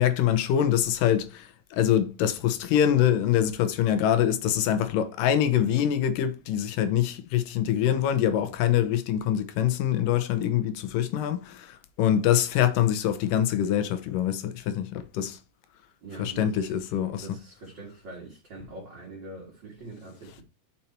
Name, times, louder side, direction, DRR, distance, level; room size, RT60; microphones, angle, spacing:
voice 1, 0.0-15.4 16.2-17.3, left 10 dB, 80° left, 2.5 m, -24 dB
voice 2, 16.0-16.8 17.2-20.4, right 2 dB, 35° right, 2.4 m, -43 dB
7.1 x 5.4 x 4.4 m
omnidirectional pair, 3.9 m